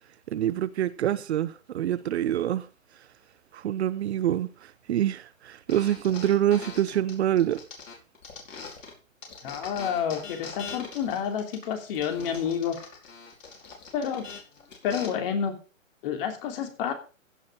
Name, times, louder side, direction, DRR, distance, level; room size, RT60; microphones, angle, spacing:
voice 1, 0.3-2.6 3.5-4.5 4.9-7.6, right 11 dB, 55° right, 0.8 m, -26 dB
sound 1, 5.7-8.9 9.2-15.1, left 5 dB, 70° left, 5.1 m, -42 dB
voice 2, 9.4-12.7 13.9-14.3 14.8-15.5 16.0-16.9, left 8 dB, 40° left, 3.1 m, -29 dB
15.5 x 6.6 x 5.0 m
hypercardioid pair, 135°, 40 cm